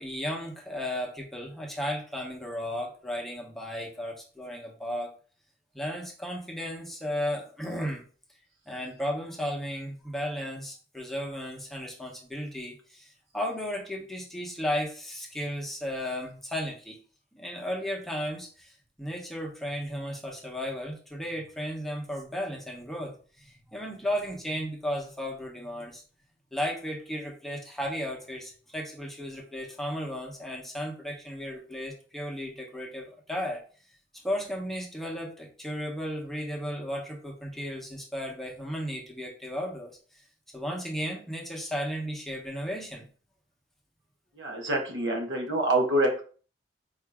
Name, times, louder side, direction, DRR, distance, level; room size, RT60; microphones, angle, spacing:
voice 1, 0.0-5.1 5.7-8.0 8.7-16.9 17.3-26.0 26.5-33.6 34.2-40.2 40.5-43.1, equal, ahead, -1 dB, 0.8 m, -34 dB
voice 2, 44.4-46.2, right 1 dB, 90° right, 1 dB, 1.1 m, -26 dB
4.7 x 2.6 x 3.5 m, 0.40 s
head